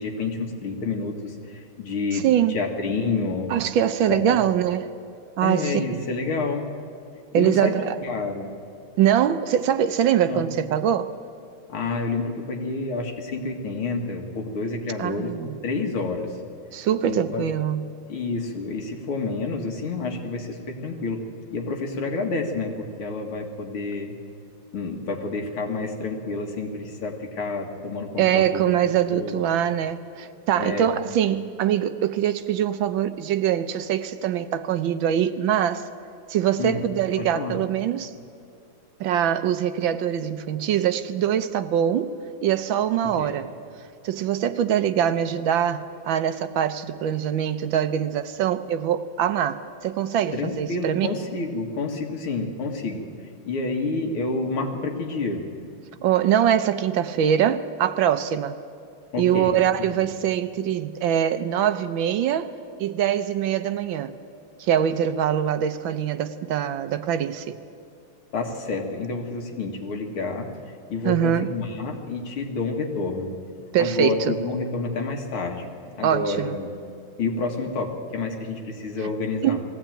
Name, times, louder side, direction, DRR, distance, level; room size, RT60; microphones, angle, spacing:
voice 1, 0.0-3.5 4.1-4.4 5.4-6.6 7.3-8.5 10.2-10.5 11.7-15.3 15.6-16.3 17.0-17.4 18.1-21.2 21.5-24.1 24.7-29.4 30.6-31.0 36.6-36.9 37.2-37.6 43.0-43.4 50.3-53.1 53.5-55.4 59.1-59.6 59.9-60.1 68.3-70.5 70.9-73.3 73.8-75.7 76.0-76.7 77.2-79.6, left 3 dB, 80° left, 2.8 m, -29 dB
voice 2, 2.1-2.6 3.5-4.9 5.4-6.0 7.3-8.0 9.0-11.1 15.0-15.6 16.7-17.8 28.2-35.8 36.3-38.1 39.0-42.1 42.4-43.5 44.0-51.2 56.0-58.6 59.2-62.5 62.8-64.1 64.6-67.5 71.0-71.5 73.7-74.3 76.0-76.6 79.0-79.1 79.4-79.6, right 10 dB, 70° right, 1.4 m, -23 dB
20.5 x 16.0 x 9.0 m
omnidirectional pair, 2.3 m